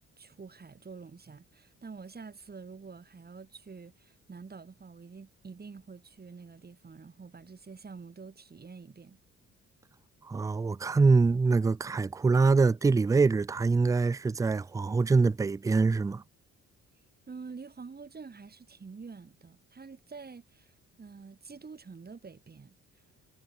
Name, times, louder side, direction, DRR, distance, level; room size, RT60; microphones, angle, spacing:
voice 1, 0.2-9.2 17.3-20.7 21.0-22.8, right 5 dB, 30° right, 4.8 m, -47 dB
voice 2, 10.2-16.2, right 4 dB, 10° right, 0.3 m, -24 dB
cardioid pair, 90°, 30 cm